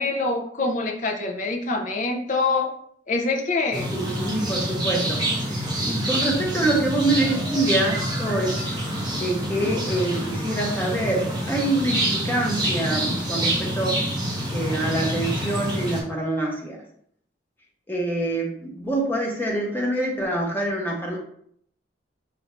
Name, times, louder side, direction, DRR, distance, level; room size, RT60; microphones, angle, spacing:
voice 1, 0.0-2.7 3.1-3.9, left 3 dB, 40° left, 2 dB, 0.6 m, -25 dB
sound 1, 3.7-16.0, right 1 dB, 20° right, 1.0 m, -27 dB
voice 2, 3.9-8.6 9.2-14.0 14.5-16.8 17.9-21.2, right 1 dB, 10° left, -2 dB, 0.8 m, -26 dB
4.4 x 2.6 x 3.1 m, 0.65 s
head